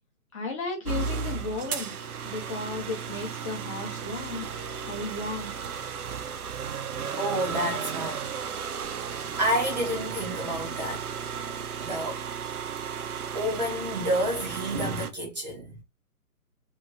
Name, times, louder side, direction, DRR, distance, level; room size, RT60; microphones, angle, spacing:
voice 1, 0.3-2.0 2.2-4.5 4.9-5.5, left 3 dB, 20° left, 0.7 m, -34 dB
sound 1, 0.9-15.1, right 6 dB, 70° right, 0.7 m, -34 dB
voice 2, 7.2-8.3 9.0-11.0 11.8-12.2 13.3-15.8, equal, 30° right, 0.6 m, -29 dB
2.9 x 2.5 x 2.4 m
figure-of-eight pair, 145°, 46 cm